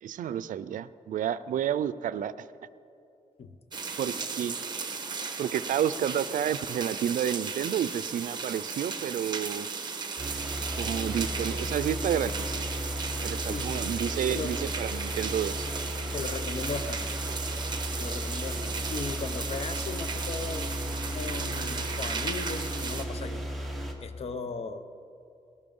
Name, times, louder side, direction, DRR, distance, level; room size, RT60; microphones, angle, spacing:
voice 1, 0.0-2.5 4.0-4.6 5.4-9.7 10.8-12.3 13.2-15.7, right 9 dB, 80° right, 16 dB, 0.4 m, -30 dB
voice 2, 3.4-3.9 13.4-13.8 14.3-14.5 16.1-17.1 18.0-20.7 21.1-23.5 24.0-24.8, left 4 dB, 50° left, 11 dB, 0.8 m, -37 dB
sound 1, 3.7-23.0, right 5 dB, 35° right, 1.2 m, -35 dB
sound 2, 10.2-23.9, equal, ahead, 1.5 m, -35 dB
19.0 x 12.0 x 5.4 m, 2.7 s
wide cardioid pair, 155°, 13 cm